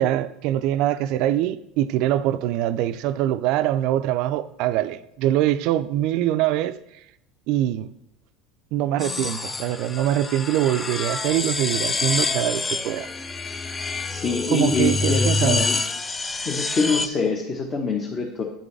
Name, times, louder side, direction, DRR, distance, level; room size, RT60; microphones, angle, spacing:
voice 1, 0.0-6.7 7.5-7.9 8.7-13.1 14.5-15.7, right 12 dB, 60° right, 0.4 m, -23 dB
sound 1, 9.0-17.1, left 3 dB, 20° left, 0.4 m, -27 dB
voice 2, 14.1-15.8 16.4-18.4, left 4 dB, 35° left, 1.1 m, -25 dB
8.5 x 5.3 x 3.3 m
hypercardioid pair, 80°, 0 cm